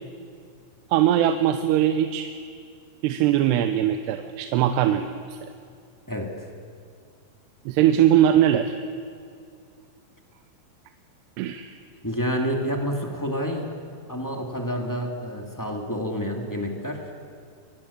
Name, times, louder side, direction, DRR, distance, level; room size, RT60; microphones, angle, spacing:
voice 1, 0.9-2.3 3.0-5.5 7.7-8.7 11.4-11.8, right 11 dB, 90° right, 8 dB, 2.9 m, -21 dB
voice 2, 6.1-6.5 12.0-13.8 14.1-17.1, equal, 15° left, 2 dB, 0.6 m, -29 dB
23.5 x 21.5 x 8.4 m, 2.3 s
omnidirectional pair, 4.7 m